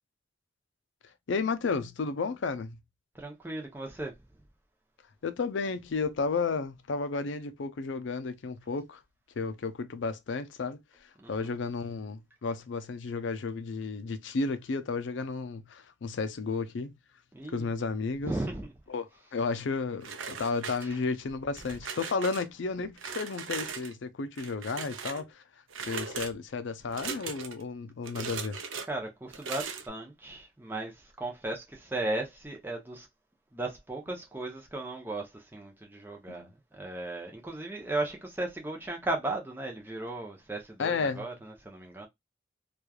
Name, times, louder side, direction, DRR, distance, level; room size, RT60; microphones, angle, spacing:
voice 1, 1.3-2.8 5.2-9.0 9.4-10.8 11.3-16.9 17.5-18.3 18.9-19.0 19.3-25.4 25.9-28.6 36.3-36.5 40.8-41.3, left 4 dB, 70° left, 0.4 m, -32 dB
voice 2, 3.1-4.1 11.2-11.5 17.3-17.7 18.2-18.7 20.8-21.0 28.9-33.1 33.5-42.1, right 2 dB, 10° right, 0.6 m, -36 dB
sound 1, 20.0-21.1 21.5-22.4 23.0-23.9 24.3-25.2 25.7-26.3 26.9-27.6 28.0-28.9 29.3-29.9, right 6 dB, 80° right, 0.5 m, -39 dB
3.0 x 2.4 x 2.3 m
head